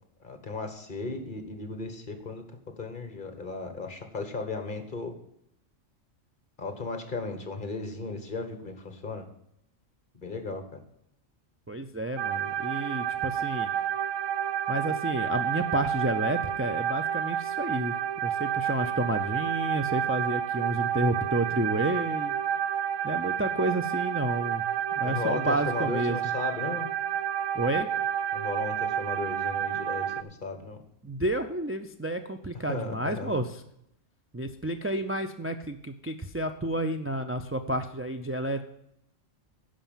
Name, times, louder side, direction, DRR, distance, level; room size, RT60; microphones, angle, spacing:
voice 1, 0.2-2.4 2.8-5.1 6.6-9.2 10.2-10.8 25.0-26.9 28.3-30.8 32.7-33.4, left 3 dB, 40° left, 7 dB, 1.5 m, -35 dB
voice 2, 11.7-13.7 14.7-17.9 18.2-22.3 23.0-24.6 25.0-26.2 27.5-27.9 31.0-33.6 34.3-38.6, right 1 dB, 20° right, 5 dB, 0.3 m, -30 dB
sound 1, 12.2-30.2, right 9 dB, 85° right, 0.9 m, -30 dB
11.5 x 5.1 x 7.3 m, 0.78 s
omnidirectional pair, 1.3 m